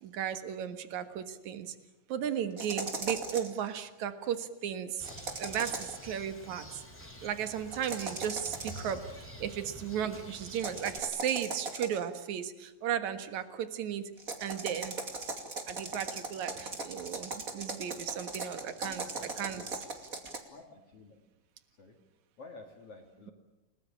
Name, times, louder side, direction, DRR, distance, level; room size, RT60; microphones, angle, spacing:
voice 1, 0.0-1.7 2.1-5.1 5.4-6.8 7.2-14.1 14.4-15.0 15.7-19.0 19.4-19.6, right 9 dB, 70° right, 10 dB, 2.9 m, -35 dB
sound 1, 2.6-3.6 5.0-6.0 7.7-9.0 10.5-12.1 14.2-20.4, right 3 dB, 30° right, 2.7 m, -39 dB
Bird, 5.0-11.0, equal, 5° left, 4.2 m, -48 dB
voice 2, 18.9-19.9 20.5-21.2 21.8-22.0 22.4-23.3, left 3 dB, 50° left, 3 dB, 3.4 m, -51 dB
30.0 x 20.0 x 8.8 m, 0.99 s
omnidirectional pair, 3.6 m